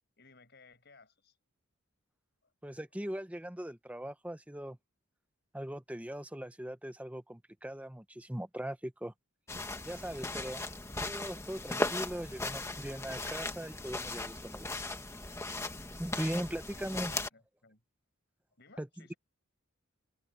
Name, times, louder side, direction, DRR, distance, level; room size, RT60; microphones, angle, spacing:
voice 1, 0.2-1.4 2.4-2.5 16.5-17.8 18.5-19.2, left 3 dB, 50° left, 6.1 m, -59 dB
voice 2, 2.6-4.8 5.5-9.1 9.8-10.6 11.0-14.7 16.0-17.2 18.8-19.1, equal, 5° right, 0.7 m, -40 dB
sound 1, 9.5-17.3, left 2 dB, 15° left, 1.5 m, -38 dB
open air
head